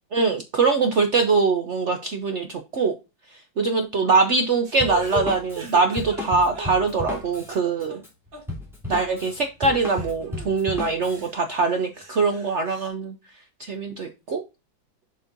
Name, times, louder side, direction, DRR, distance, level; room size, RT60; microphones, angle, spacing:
voice 1, 0.1-2.9 3.6-8.0 8.9-13.1 13.6-14.4, right 4 dB, 60° right, 5 dB, 0.7 m, -23 dB
sound 1, 4.6-7.2 7.5-8.0 8.3-8.4 9.0-9.1 9.6-10.6 11.0-12.9, right 5 dB, 85° right, 3.1 m, -37 dB
Drum kit, 4.8-11.3, left 2 dB, ahead, 2.7 m, -34 dB
7.9 x 5.4 x 2.6 m, 0.27 s
omnidirectional pair, 2.0 m